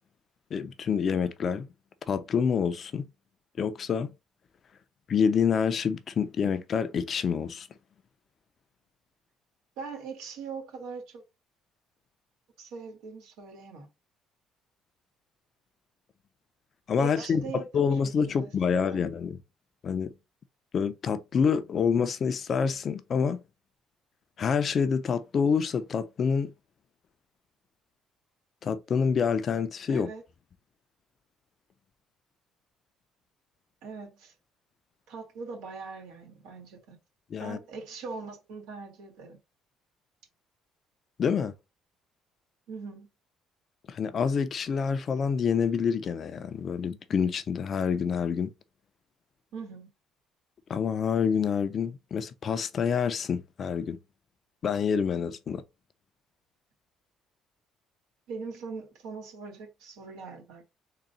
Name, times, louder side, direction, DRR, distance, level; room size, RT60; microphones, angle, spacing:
voice 1, 0.5-1.7 2.1-3.1 3.6-4.1 5.1-7.7 16.9-19.4 19.8-20.1 20.7-23.4 24.4-26.5 28.6-30.1 37.3-37.6 41.2-41.5 43.9-48.5 50.7-54.0 54.6-55.6, left 6 dB, 45° left, 0.5 m, -27 dB
voice 2, 9.8-11.2 12.6-13.9 17.0-19.0 29.9-30.2 33.8-34.3 35.1-37.0 37.4-39.4 42.7-43.1 49.5-49.9 58.3-60.7, right 4 dB, 85° right, 1.7 m, -41 dB
3.8 x 2.3 x 4.1 m
cardioid pair, 110°, 0 cm